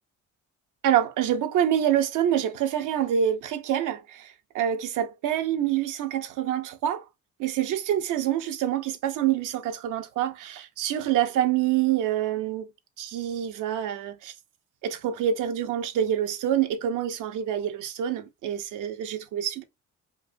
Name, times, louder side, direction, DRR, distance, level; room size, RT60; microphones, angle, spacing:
voice 1, 0.8-7.1 7.4-12.7 13.0-14.3 14.8-19.6, right 10 dB, 85° right, 0.6 m, -26 dB
4.9 x 2.1 x 2.6 m
cardioid pair, 90°, 30 cm